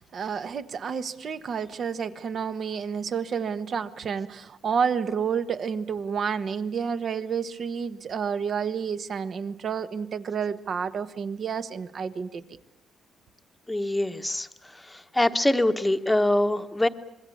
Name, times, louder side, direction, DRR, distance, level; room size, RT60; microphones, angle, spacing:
voice 1, 0.0-12.4, right 6 dB, 50° right, 12 dB, 1.3 m, -30 dB
voice 2, 13.7-14.5 14.9-16.9, left 1 dB, 10° left, 8 dB, 1.2 m, -24 dB
26.0 x 22.5 x 8.6 m, 0.81 s
cardioid pair, 125°, 0 cm